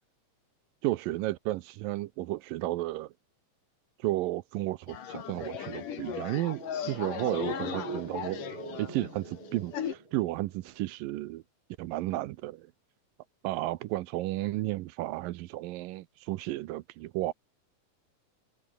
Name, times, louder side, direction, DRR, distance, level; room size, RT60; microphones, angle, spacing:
voice 1, 0.8-3.1 4.0-8.4 8.8-11.4 11.8-12.7 13.4-17.3, right 17 dB, 80° right, 2.4 m, -33 dB
sound 1, 4.9-9.9, left 9 dB, 65° left, 3.8 m, -37 dB
sound 2, 6.2-10.8 11.0-11.1, right 2 dB, 35° right, 7.9 m, -43 dB
omnidirectional pair, 4.0 m